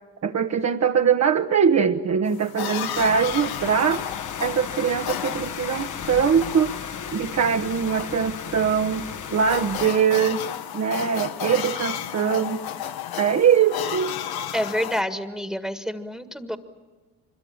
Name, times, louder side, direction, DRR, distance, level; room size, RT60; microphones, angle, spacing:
voice 1, 0.2-4.0 4.4-6.7 7.1-9.0 9.3-10.4 10.7-12.6 13.2-14.2, right 7 dB, 40° right, 4 dB, 1.3 m, -22 dB
sound 1, 2.3-15.0, left 10 dB, 65° left, 1.4 m, -34 dB
sound 2, 2.9-9.9, left 7 dB, 45° left, 1.6 m, -35 dB
voice 2, 14.5-16.6, equal, ahead, 7 dB, 1.8 m, -28 dB
25.5 x 23.0 x 8.8 m, 1.3 s
supercardioid pair, 65°, 40 cm